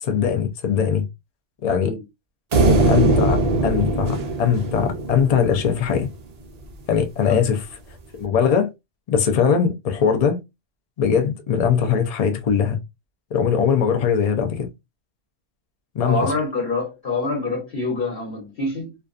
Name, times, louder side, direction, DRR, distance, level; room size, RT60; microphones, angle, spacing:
voice 1, 0.0-1.0 1.6-2.0 2.7-6.1 6.9-7.6 8.1-8.7 9.1-10.4 11.0-12.8 13.3-14.7 15.9-16.3, left 7 dB, 75° left, 0.3 m, -21 dB
sound 1, 2.5-5.9, right 2 dB, 90° right, 0.3 m, -20 dB
voice 2, 16.0-18.9, left 2 dB, 50° left, 1.0 m, -26 dB
2.4 x 2.2 x 2.3 m
omnidirectional pair, 1.4 m